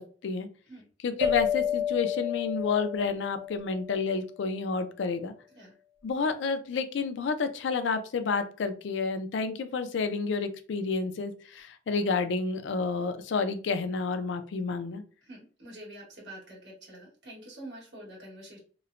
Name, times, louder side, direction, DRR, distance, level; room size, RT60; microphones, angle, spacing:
voice 1, 0.0-0.5 1.0-5.3 6.0-15.0, left 4 dB, 75° left, 9 dB, 0.4 m, -30 dB
sound 1, 1.2-4.2, left 8 dB, 50° right, 1.0 m, -31 dB
voice 2, 15.3-18.6, right 1 dB, 65° right, -4 dB, 1.5 m, -46 dB
2.9 x 2.1 x 2.5 m, 0.40 s
head